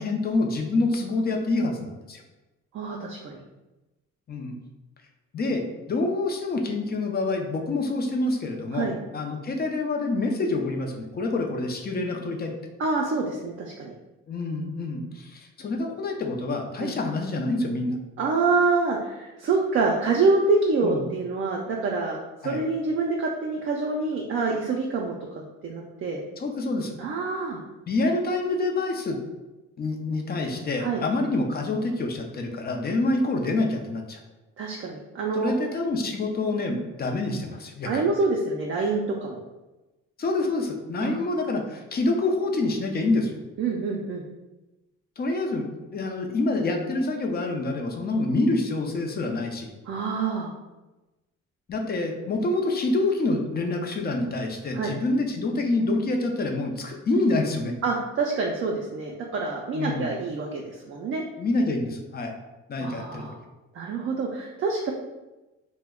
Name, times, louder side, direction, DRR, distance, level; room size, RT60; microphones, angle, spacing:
voice 1, 0.0-2.2 4.3-4.5 5.3-8.9 9.1-12.5 14.3-18.0 20.8-21.0 22.4-22.6 26.4-26.9 27.9-29.2 29.8-34.2 35.3-38.0 40.2-43.3 45.2-49.7 51.7-57.7 59.7-60.1 61.4-62.3 62.7-63.3, left 2 dB, 35° left, 2 dB, 0.5 m, -27 dB
voice 2, 2.7-3.4 8.7-9.0 12.8-13.9 16.8-16.9 18.2-22.2 22.4-25.1 25.6-26.2 27.0-27.6 30.8-31.0 34.6-35.5 37.9-39.4 41.0-41.2 43.6-44.2 49.9-50.5 54.7-54.9 57.8-61.2 62.8-63.4 63.7-64.9, right 3 dB, 45° right, 0 dB, 0.4 m, -26 dB
2.2 x 2.1 x 3.5 m, 1.1 s
cardioid pair, 90°, 30 cm